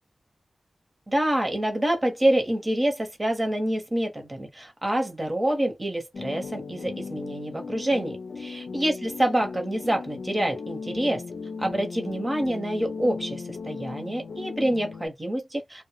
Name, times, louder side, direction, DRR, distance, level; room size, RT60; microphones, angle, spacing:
voice 1, 1.1-11.2 11.6-15.9, right 1 dB, 25° right, 1.0 m, -27 dB
sound 1, 6.1-15.1, left 4 dB, 80° left, 0.4 m, -37 dB
2.2 x 2.1 x 2.9 m
wide cardioid pair, 90°, 0 cm